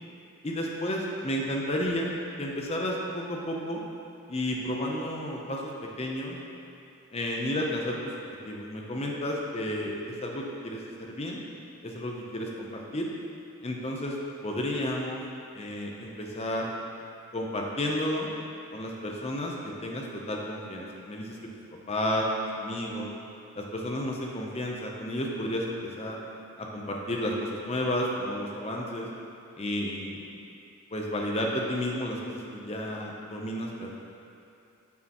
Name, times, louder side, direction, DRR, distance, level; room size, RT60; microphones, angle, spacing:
voice 1, 0.4-2.1 2.4-3.8 4.3-5.7 6.0-6.4 7.1-8.0 8.4-11.4 11.8-13.1 13.6-14.2 14.4-15.2 15.5-16.7 17.3-18.3 18.7-19.5 19.8-21.4 21.9-22.3 22.5-23.1 23.5-26.2 26.6-29.1 29.6-30.3 30.9-33.9, left 1 dB, 30° left, -1 dB, 0.7 m, -32 dB
7.2 x 6.5 x 3.0 m, 2.7 s
head